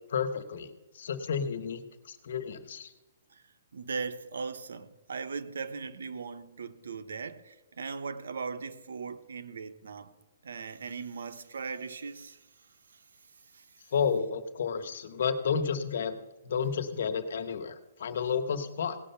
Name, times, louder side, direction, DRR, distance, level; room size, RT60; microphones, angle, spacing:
voice 1, 0.1-2.9 13.9-16.1 16.4-19.0, left 6 dB, 60° left, 1.2 m, -31 dB
voice 2, 3.7-10.1 10.4-13.0 13.5-13.8, right 5 dB, 80° right, 1.0 m, -39 dB
17.5 x 6.5 x 5.8 m
hypercardioid pair, 160°, 0 cm